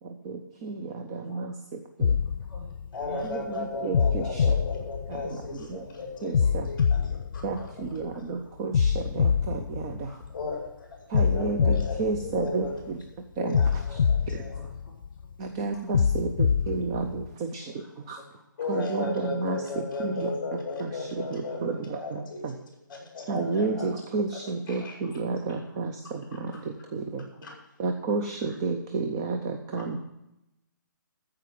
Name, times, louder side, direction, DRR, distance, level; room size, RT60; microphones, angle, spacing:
voice 1, 0.0-2.4 3.2-4.5 5.1-5.9 6.2-6.7 7.4-10.2 11.1-14.0 14.3-14.5 15.4-18.2 18.7-22.6 23.3-27.3 27.8-30.0, right 4 dB, 15° right, 5 dB, 0.4 m, -32 dB
sound 1, 2.0-3.3 3.9-5.6 6.3-8.1 8.7-10.5 11.1-12.9 13.5-15.2 15.9-17.3, left 6 dB, 85° left, 0.4 m, -26 dB
voice 2, 2.2-3.8 6.4-6.5 8.1-8.2 8.6-8.7 9.2-9.3 10.0-10.2 13.7-14.0 14.5-15.6 15.8-16.0 17.8-19.1 23.0-23.1 23.5-23.6 25.7-25.8 27.3-27.6, right 1 dB, ahead, -12 dB, 1.9 m, -50 dB
voice 3, 2.9-7.7 10.3-10.9 11.3-12.0 12.2-12.7 13.4-14.5 18.6-22.6 23.1-23.9 24.7-24.9, left 3 dB, 20° left, -2 dB, 5.1 m, -35 dB
14.0 x 4.9 x 9.2 m, 0.89 s
hypercardioid pair, 175°, 11 cm